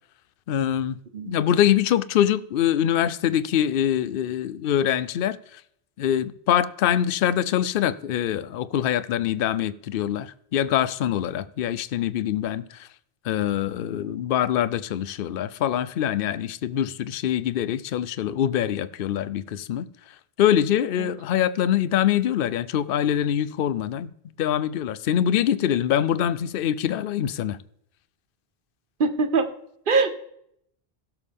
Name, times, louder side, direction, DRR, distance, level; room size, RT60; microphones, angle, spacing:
voice 1, 0.5-1.0 1.3-5.6 6.0-12.9 13.2-19.9 20.4-24.1 24.4-27.6, left 10 dB, 65° left, 0.7 m, -24 dB
voice 2, 29.0-29.4 29.9-30.2, right 4 dB, 55° right, 1.2 m, -22 dB
16.5 x 7.1 x 3.5 m
omnidirectional pair, 1.1 m